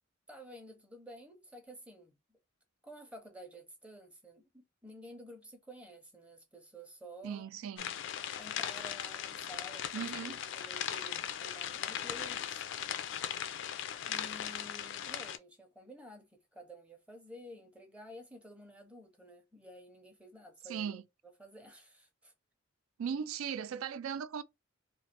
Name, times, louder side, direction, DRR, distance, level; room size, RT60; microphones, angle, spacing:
voice 1, 0.3-2.1 2.8-7.5 8.3-12.6 14.0-22.3, equal, 5° right, 0.6 m, -52 dB
voice 2, 7.2-7.9 9.9-10.4 20.7-21.0 23.0-24.4, right 7 dB, 85° right, 0.4 m, -38 dB
sound 1, 7.8-15.4, left 9 dB, 60° left, 0.3 m, -38 dB
3.1 x 2.4 x 2.8 m
head